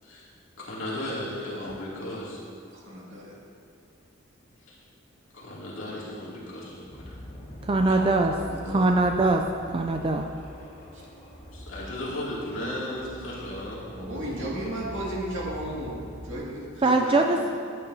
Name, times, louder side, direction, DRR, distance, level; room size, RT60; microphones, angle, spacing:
voice 1, 0.6-2.4 4.7-4.8 5.3-7.2 11.5-13.9, left 1 dB, 70° left, -6 dB, 2.6 m, -35 dB
voice 2, 2.7-3.4 7.9-8.9 10.9-11.0 13.9-17.5, right 1 dB, 65° right, -4 dB, 2.3 m, -35 dB
sound 1, 6.6-16.4, equal, 35° left, 1.7 m, -43 dB
voice 3, 7.6-8.3 8.7-9.4 9.7-10.2 16.8-17.4, right 2 dB, 25° right, 3 dB, 0.4 m, -22 dB
14.0 x 8.5 x 2.8 m, 2.5 s
head